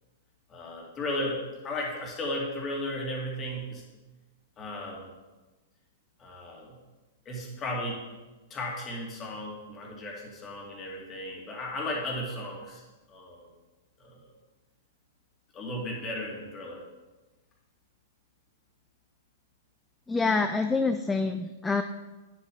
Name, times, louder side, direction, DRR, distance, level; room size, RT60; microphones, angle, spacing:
voice 1, 0.5-3.8 4.6-5.1 6.2-6.8 7.3-8.0 8.5-12.8 13.1-13.5 14.0-14.3 15.5-16.8, left 1 dB, 25° left, -2 dB, 2.4 m, -35 dB
voice 2, 20.1-21.8, left 4 dB, 10° left, 7 dB, 0.4 m, -26 dB
9.6 x 7.3 x 3.9 m, 1.2 s
figure-of-eight pair, 105°, 0 cm